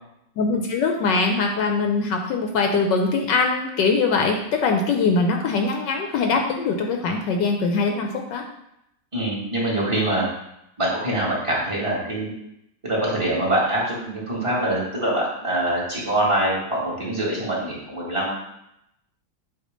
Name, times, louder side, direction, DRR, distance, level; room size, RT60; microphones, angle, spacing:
voice 1, 0.4-8.4, left 4 dB, 75° left, 3 dB, 1.3 m, -22 dB
voice 2, 9.1-10.2 10.8-12.3 12.8-18.3, right 1 dB, 15° right, -6 dB, 1.9 m, -24 dB
7.9 x 2.9 x 5.1 m, 0.81 s
omnidirectional pair, 2.0 m